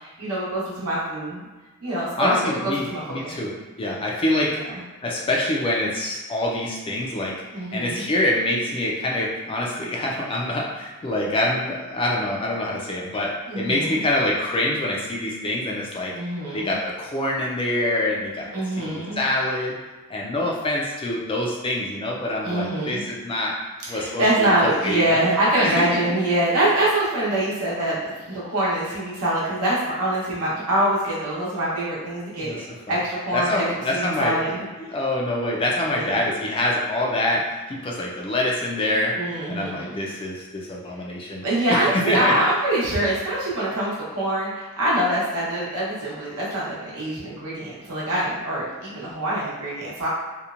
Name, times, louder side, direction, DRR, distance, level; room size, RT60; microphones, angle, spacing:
voice 1, 0.0-1.5 1.8-3.4 4.5-4.6 7.5-8.1 13.5-14.0 16.1-16.7 18.5-19.2 22.4-23.1 23.8-28.0 28.3-32.6 32.9-33.7 33.9-34.6 35.9-36.2 39.2-40.0 41.4-50.1, right 1 dB, 85° right, -7 dB, 1.0 m, -24 dB
voice 2, 2.2-4.6 5.0-7.4 7.7-16.1 16.5-18.5 18.8-19.8 20.1-23.6 23.9-25.2 25.6-26.0 32.4-33.0 33.3-34.4 34.8-39.2 39.5-41.4 41.7-42.3, left 1 dB, 25° left, -2 dB, 0.3 m, -25 dB
2.8 x 2.1 x 2.4 m, 1.2 s
head